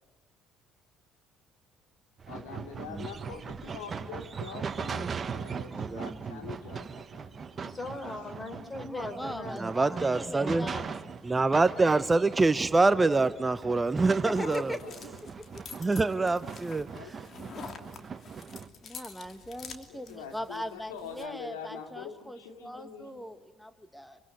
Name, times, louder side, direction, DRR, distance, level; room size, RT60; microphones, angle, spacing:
sound 1, 2.2-18.7, right 6 dB, 40° right, 1.5 m, -40 dB
voice 1, 2.3-7.4 14.3-15.0 16.9-17.1 17.4-17.9 19.9-23.2, left 7 dB, 85° left, 2.8 m, -44 dB
voice 2, 5.7-6.4 9.6-10.7 11.2-14.7 15.8-16.9, right 3 dB, 20° right, 0.9 m, -25 dB
voice 3, 7.5-10.9, left 1 dB, 25° left, 5.2 m, -39 dB
voice 4, 8.8-10.9 14.2-15.0 18.8-24.2, equal, 5° left, 1.5 m, -40 dB
sound 2, 13.8-21.3, left 5 dB, 50° left, 3.0 m, -48 dB
25.5 x 24.5 x 9.5 m
hypercardioid pair, 65°, 0 cm